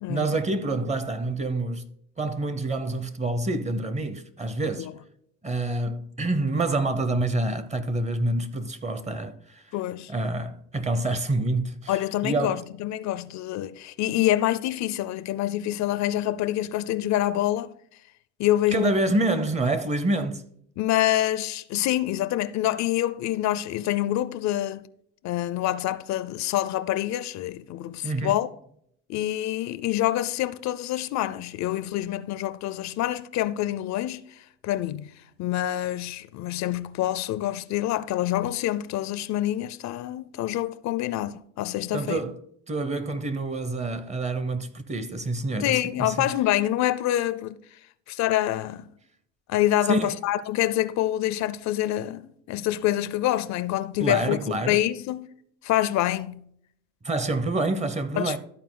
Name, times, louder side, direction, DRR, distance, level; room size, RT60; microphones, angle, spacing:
voice 1, 0.1-1.9 2.2-4.9 5.4-9.6 10.1-12.0 12.2-12.6 18.7-20.4 28.0-28.4 41.9-42.4 42.7-46.3 49.9-50.1 54.0-54.8 57.0-58.4, right 2 dB, 20° right, 0.8 m, -27 dB
voice 2, 9.7-10.1 11.9-17.7 18.4-18.9 20.8-24.9 25.2-28.5 29.1-34.4 34.6-35.1 35.4-42.2 45.6-47.6 48.1-48.9 49.5-55.3 55.6-56.5 58.2-58.4, left 13 dB, 65° left, 0.5 m, -26 dB
13.0 x 4.4 x 3.8 m
cardioid pair, 110°, 30 cm